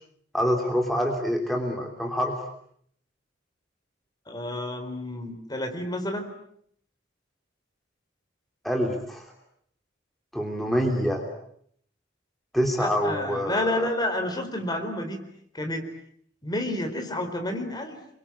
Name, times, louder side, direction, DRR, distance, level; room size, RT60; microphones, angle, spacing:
voice 1, 0.3-2.4 8.6-9.3 10.3-11.2 12.5-13.9, equal, ahead, 1 dB, 3.2 m, -26 dB
voice 2, 4.3-6.4 12.8-15.2 15.5-15.9 16.4-18.0, left 1 dB, 20° left, 6 dB, 4.0 m, -30 dB
28.5 x 24.5 x 8.6 m, 0.68 s
head